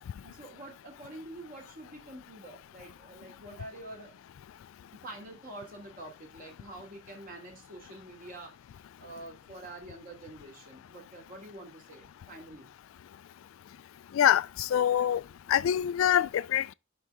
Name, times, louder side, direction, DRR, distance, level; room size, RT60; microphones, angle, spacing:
voice 1, 0.2-4.2 5.0-8.5 9.0-12.7, right 1 dB, 45° right, 2.7 m, -46 dB
voice 2, 14.1-15.2 15.5-16.7, left 10 dB, 75° left, 0.3 m, -25 dB
10.5 x 4.0 x 3.5 m
head